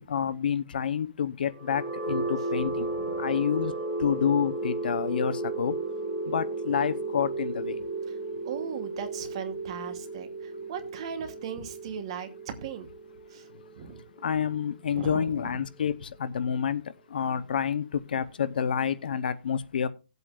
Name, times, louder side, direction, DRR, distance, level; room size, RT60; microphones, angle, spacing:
voice 1, 0.0-2.9 3.2-3.7 4.0-5.8 6.3-7.8 14.2-16.8 17.1-19.9, left 8 dB, 65° left, 0.8 m, -28 dB
sound 1, 1.5-15.4, right 2 dB, ahead, 3.2 m, -34 dB
voice 2, 2.6-3.2 8.1-8.2 8.4-12.9 13.3-13.5 13.8-14.0 14.9-15.6, right 7 dB, 35° right, 1.2 m, -38 dB
17.5 x 8.1 x 2.5 m
hypercardioid pair, 175°, 5 cm